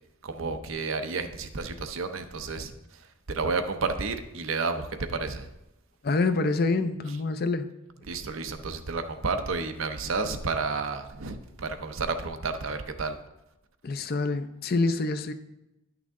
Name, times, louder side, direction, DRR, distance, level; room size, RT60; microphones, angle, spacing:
voice 1, 0.2-5.5 7.1-7.2 8.0-13.2, right 4 dB, 75° right, 7 dB, 0.7 m, -31 dB
voice 2, 6.0-7.7 13.8-15.3, left 3 dB, 45° left, 10 dB, 0.5 m, -26 dB
10.0 x 6.1 x 3.6 m, 0.92 s
head